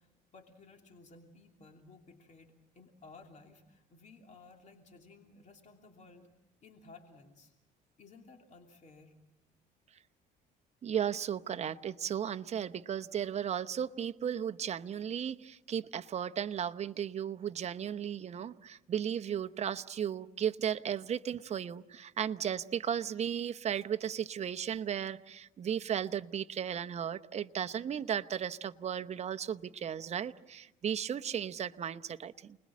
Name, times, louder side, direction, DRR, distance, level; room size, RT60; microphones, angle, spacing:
voice 1, 0.0-6.3 6.6-7.5 8.0-9.1, left 3 dB, 45° left, 3 dB, 2.9 m, -56 dB
voice 2, 10.8-32.6, right 9 dB, 40° right, 9 dB, 0.9 m, -35 dB
29.5 x 20.5 x 7.4 m, 0.92 s
cardioid pair, 110°, 17 cm